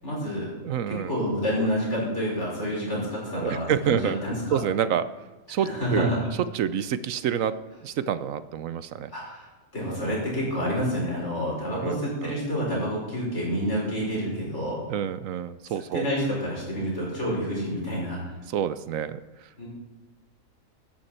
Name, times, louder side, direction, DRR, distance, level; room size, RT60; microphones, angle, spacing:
voice 1, 0.0-0.5 0.9-4.6 5.6-6.2 9.1-9.4 9.7-14.8 15.9-18.2 19.6-19.7, equal, 55° left, -4 dB, 5.9 m, -28 dB
voice 2, 0.6-1.1 1.6-1.7 3.4-4.2 4.5-5.1 5.5-6.1 6.5-9.1 9.9-10.1 11.7-12.4 14.9-16.0 18.5-19.6, right 9 dB, 75° right, 14 dB, 1.1 m, -28 dB
16.5 x 12.0 x 4.4 m, 1.2 s
omnidirectional pair, 1.4 m